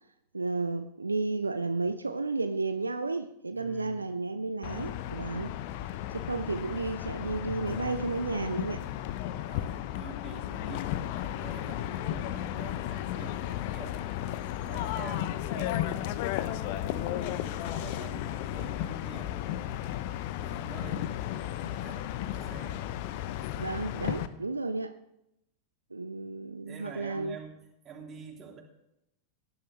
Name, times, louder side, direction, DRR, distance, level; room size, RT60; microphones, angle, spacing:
voice 1, 0.3-5.5 6.1-8.8 23.6-24.9 25.9-27.4, right 3 dB, 80° right, 0.6 m, -32 dB
voice 2, 3.5-4.1 5.5-5.7 9.5-20.0 20.4-22.8 26.7-28.6, right 4 dB, 25° right, 3.2 m, -48 dB
sound 1, 4.6-24.3, left 12 dB, 50° left, 0.8 m, -34 dB
18.0 x 11.0 x 3.3 m
figure-of-eight pair, 90°, 0 cm